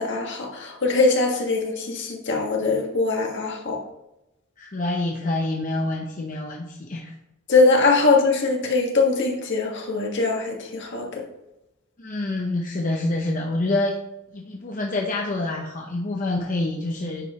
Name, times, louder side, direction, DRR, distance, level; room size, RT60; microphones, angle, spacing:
voice 1, 0.0-3.8 7.5-11.2, left 3 dB, 60° left, 1 dB, 1.6 m, -22 dB
voice 2, 4.6-7.1 12.0-14.0 14.3-17.3, left 2 dB, 40° left, 0 dB, 0.8 m, -27 dB
9.7 x 5.3 x 3.0 m, 0.92 s
head